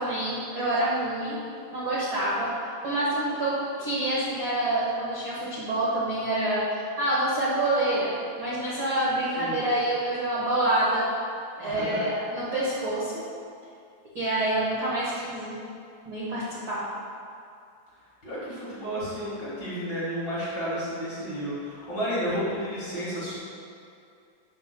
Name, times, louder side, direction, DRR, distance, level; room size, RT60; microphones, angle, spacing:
voice 1, 0.0-1.4 1.7-8.1 8.4-11.1 11.6-13.2 14.1-15.6 16.0-16.8, right 1 dB, 80° right, -8 dB, 1.0 m, -27 dB
voice 2, 11.6-12.0 18.2-23.4, equal, 40° left, -9 dB, 1.7 m, -32 dB
11.5 x 7.4 x 2.2 m, 2.4 s
omnidirectional pair, 4.1 m